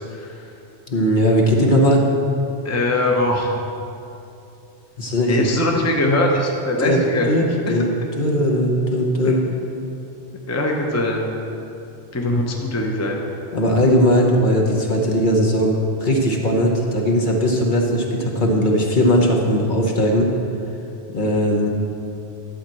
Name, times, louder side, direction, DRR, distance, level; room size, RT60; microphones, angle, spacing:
voice 1, 0.1-0.4 2.6-3.5 5.3-7.3 7.7-7.8 9.2-9.3 10.5-11.3 12.1-13.2, left 1 dB, 15° left, 0 dB, 0.8 m, -21 dB
voice 2, 0.9-2.1 5.0-5.5 6.8-7.0 7.3-7.9 8.2-9.4 13.5-20.3 21.1-21.7, equal, 50° left, 0 dB, 1.1 m, -18 dB
11.5 x 4.4 x 7.7 m, 2.7 s
omnidirectional pair, 1.1 m